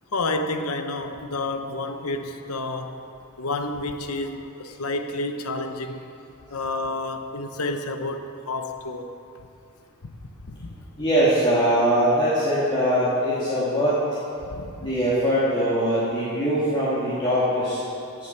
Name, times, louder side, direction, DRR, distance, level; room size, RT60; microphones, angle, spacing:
voice 1, 0.1-2.9 3.4-6.0 6.5-9.1 10.4-10.7 14.5-14.9, left 2 dB, 80° left, 6 dB, 1.0 m, -30 dB
voice 2, 11.0-14.0 14.8-17.8, equal, 25° left, -10 dB, 2.4 m, -22 dB
16.0 x 7.9 x 5.8 m, 2.5 s
head